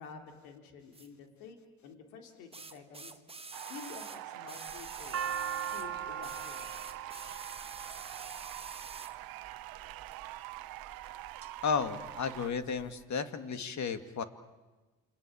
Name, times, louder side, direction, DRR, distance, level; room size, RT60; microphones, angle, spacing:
voice 1, 0.0-1.6 1.8-3.2 3.7-5.3 5.6-7.0, left 5 dB, 85° left, 5 dB, 3.2 m, -50 dB
sound 1, 0.9-1.1 2.5-5.9 6.2-9.2 10.1-10.2, right 3 dB, 15° right, 1.5 m, -47 dB
sound 2, 3.5-12.5, right 16 dB, 75° right, 1.1 m, -45 dB
sound 3, 4.7-8.9 9.8-10.2 10.8-11.5 11.8-11.9 12.1-12.9, right 8 dB, 40° right, 2.0 m, -39 dB
voice 2, 11.6-14.2, left 5 dB, 50° left, 10 dB, 2.3 m, -33 dB
29.5 x 23.0 x 8.8 m, 1.2 s
supercardioid pair, 65°, 35 cm